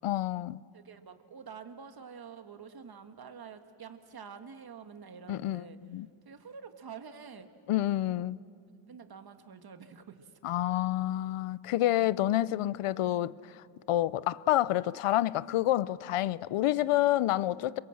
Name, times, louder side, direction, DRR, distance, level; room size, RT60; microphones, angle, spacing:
voice 1, 0.0-0.6 5.3-6.1 7.7-8.4 10.4-13.3 13.9-17.8, left 14 dB, 90° left, 0.7 m, -28 dB
voice 2, 0.7-5.8 6.3-7.5 8.9-10.3, right 6 dB, 45° right, 1.6 m, -47 dB
26.5 x 23.5 x 7.7 m
wide cardioid pair, 125°, 49 cm